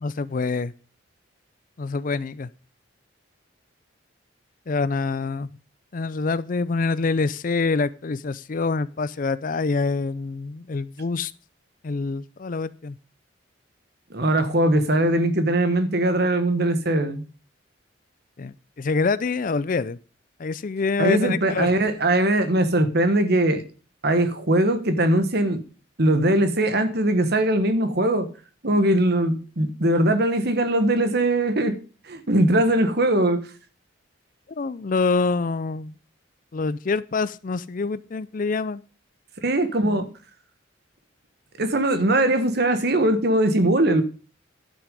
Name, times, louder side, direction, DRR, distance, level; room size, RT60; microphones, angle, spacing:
voice 1, 0.0-0.7 1.8-2.5 4.7-5.5 5.9-11.3 11.8-13.0 18.4-20.0 20.4-21.7 34.5-36.0 36.5-38.8 39.8-40.1, left 4 dB, 45° left, 0.4 m, -26 dB
voice 2, 14.1-17.2 21.0-23.6 24.0-25.6 26.0-28.3 28.6-31.8 32.1-33.4 39.4-40.1 41.6-44.0, right 1 dB, 55° right, 1.4 m, -21 dB
11.5 x 6.2 x 5.3 m
head